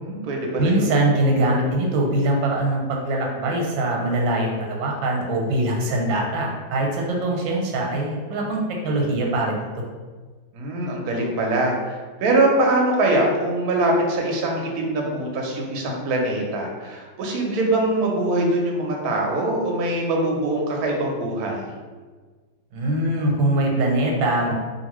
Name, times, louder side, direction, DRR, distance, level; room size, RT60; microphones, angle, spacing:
voice 1, 0.0-0.9 10.5-21.7, right 2 dB, 70° right, 0 dB, 0.9 m, -23 dB
voice 2, 0.6-9.6 22.7-24.5, right 1 dB, 90° right, -1 dB, 1.4 m, -22 dB
2.8 x 2.7 x 3.0 m, 1.4 s
omnidirectional pair, 2.1 m